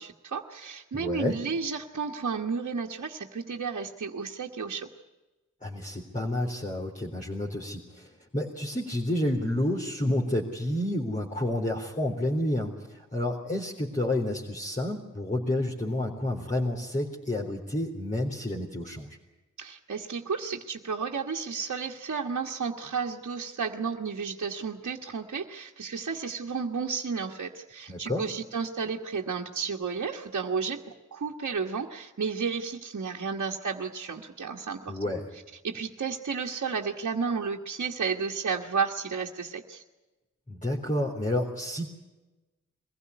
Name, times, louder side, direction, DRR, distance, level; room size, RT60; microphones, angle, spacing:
voice 1, 0.0-4.9 19.6-35.0 35.6-39.8, right 5 dB, 60° right, -1 dB, 1.5 m, -32 dB
voice 2, 0.9-1.4 5.6-19.1 27.9-28.2 34.9-35.3 40.5-41.9, left 1 dB, 25° left, -2 dB, 3.9 m, -30 dB
22.5 x 15.5 x 9.6 m, 1.1 s
cardioid pair, 45°, 31 cm